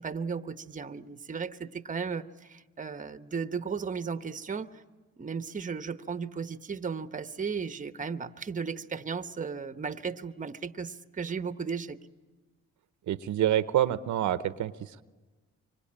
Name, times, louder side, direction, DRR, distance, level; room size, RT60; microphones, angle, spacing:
voice 1, 0.0-4.8 5.2-12.0, right 5 dB, 25° right, 11 dB, 1.0 m, -35 dB
voice 2, 13.1-15.0, right 12 dB, 75° right, 13 dB, 0.9 m, -27 dB
25.5 x 25.0 x 8.8 m, 1.3 s
cardioid pair, 90°, 30 cm